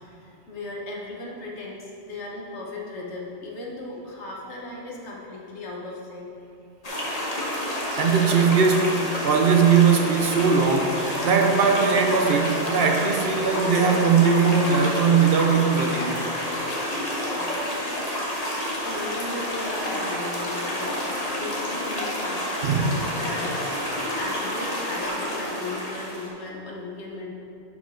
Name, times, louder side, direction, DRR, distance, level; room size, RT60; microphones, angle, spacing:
voice 1, 0.0-6.3 17.3-17.5 18.8-23.6 23.9-27.3, left 2 dB, 75° left, -2 dB, 1.5 m, -36 dB
sound 1, 6.8-26.3, left 1 dB, 35° left, 1.3 m, -29 dB
voice 2, 8.0-16.2 22.6-22.9, right 5 dB, 60° right, 3 dB, 0.9 m, -20 dB
11.5 x 4.9 x 3.8 m, 2.7 s
omnidirectional pair, 1.2 m